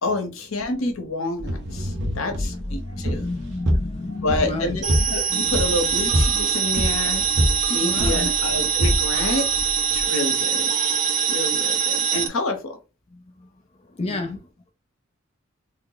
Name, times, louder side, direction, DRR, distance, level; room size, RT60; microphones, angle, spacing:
voice 1, 0.0-3.3 4.2-7.2 7.7-9.5 9.9-10.7 11.3-12.8 14.0-14.4, left 2 dB, 75° left, 0.9 m, -28 dB
sound 1, 1.4-10.1, equal, 60° right, 1.1 m, -26 dB
voice 2, 2.0-4.8 5.3-5.5 7.8-8.3 14.0-14.3, left 2 dB, 30° left, 0.5 m, -31 dB
sound 2, 4.8-12.3, right 7 dB, 40° right, 0.5 m, -23 dB
3.3 x 2.1 x 3.8 m
head